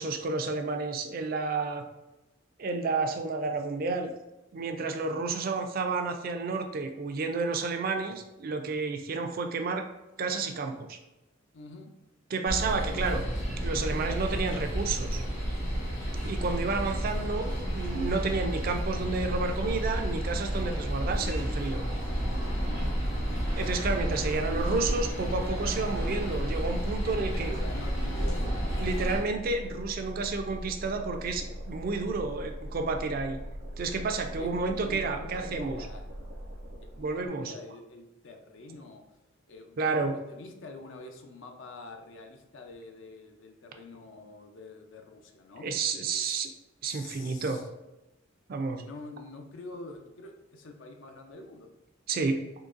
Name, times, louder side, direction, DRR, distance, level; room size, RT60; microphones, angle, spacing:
voice 1, 0.0-1.9 2.6-4.1 4.5-9.9 10.2-11.0 12.3-13.3 13.6-15.2 16.2-21.9 23.6-27.5 28.8-33.4 33.8-35.9 37.0-37.5 39.8-40.2 45.6-46.5 46.8-47.6 48.5-48.8 52.1-52.4, right 4 dB, 45° right, 5 dB, 0.4 m, -31 dB
voice 2, 11.5-11.9 22.6-23.0 23.5-23.6 24.2-24.3 24.7-24.8 27.0-28.8 34.3-36.0 36.8-39.0 39.5-45.7 46.1-46.5 46.8-47.7 48.8-51.7, left 2 dB, 70° left, 4 dB, 0.5 m, -45 dB
sound 1, 12.5-29.2, equal, 85° left, 1.4 m, -31 dB
sound 2, 25.3-37.3, equal, 80° right, 1.0 m, -41 dB
3.8 x 3.0 x 2.5 m, 0.98 s
head